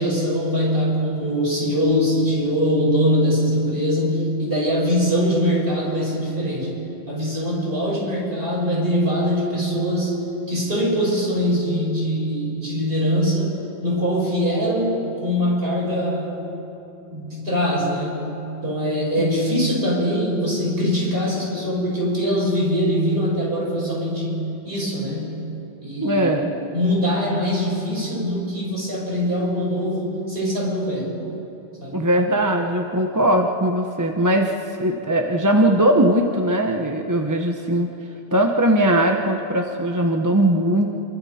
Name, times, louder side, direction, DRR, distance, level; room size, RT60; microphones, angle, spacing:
voice 1, 0.0-6.7 7.1-10.2 10.5-16.4 17.1-24.4 24.6-25.4 25.8-26.4 26.7-31.2 31.8-32.0, equal, 55° right, -4 dB, 5.9 m, -22 dB
voice 2, 26.0-26.5 31.9-37.9 38.3-41.0, right 1 dB, 15° right, 3 dB, 1.0 m, -20 dB
28.0 x 23.5 x 4.4 m, 3.0 s
omnidirectional pair, 1.1 m